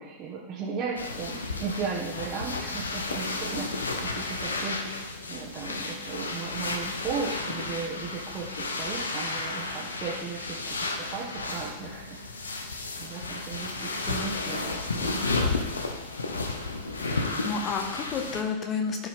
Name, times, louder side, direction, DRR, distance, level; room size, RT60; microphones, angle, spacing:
voice 1, 0.0-15.3, right 5 dB, 35° right, -5 dB, 1.5 m, -36 dB
sound 1, 1.0-18.4, left 3 dB, 75° left, 0.8 m, -32 dB
voice 2, 17.0-19.1, left 5 dB, 30° left, 3 dB, 1.3 m, -31 dB
13.5 x 4.7 x 3.6 m, 1.1 s
figure-of-eight pair, 90°, 0 cm